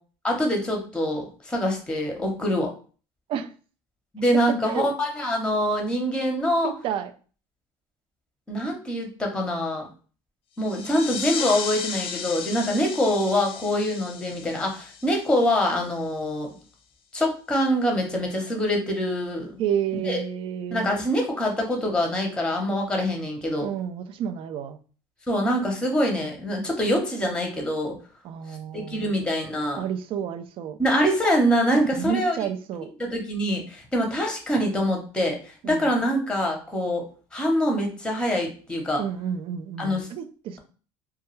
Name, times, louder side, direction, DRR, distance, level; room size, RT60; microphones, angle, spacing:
voice 1, 0.2-2.7 4.1-6.7 8.5-9.9 10.6-16.5 17.1-19.5 20.0-20.2 20.7-23.7 25.3-28.0 28.7-29.8 30.8-32.4 33.0-37.0 37.3-39.0 39.8-40.1, equal, 10° left, 1 dB, 0.7 m, -25 dB
voice 2, 6.6-7.1 19.6-21.0 23.6-24.8 28.2-29.1 29.8-30.8 32.0-32.9 35.6-35.9 39.0-40.6, right 9 dB, 55° right, 9 dB, 0.4 m, -30 dB
sound 1, 10.6-15.9, left 7 dB, 60° left, 0.4 m, -35 dB
2.2 x 2.2 x 3.1 m, 0.39 s
supercardioid pair, 95°, 11 cm